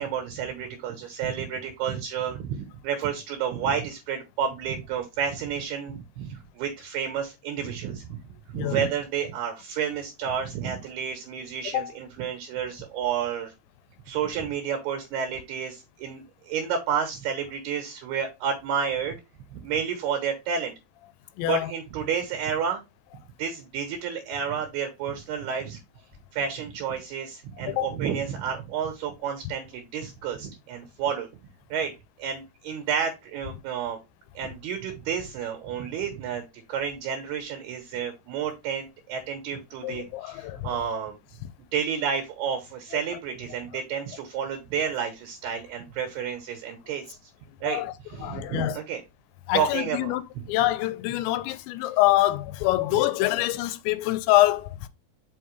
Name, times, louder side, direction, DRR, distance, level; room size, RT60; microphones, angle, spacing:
voice 1, 0.0-8.1 8.5-13.5 14.1-19.2 19.5-20.7 21.5-22.8 23.4-25.8 26.3-31.3 31.7-31.9 32.2-34.0 34.4-41.2 41.7-47.2 47.6-47.8 48.1-49.0 49.5-50.5, right 7 dB, 70° right, 2.8 m, -30 dB
voice 2, 21.4-21.7 27.7-27.9 39.8-40.7 47.6-47.9 48.2-48.8 49.5-50.2 50.5-54.9, left 16 dB, 80° left, 2.8 m, -25 dB
5.8 x 5.6 x 3.1 m
omnidirectional pair, 5.3 m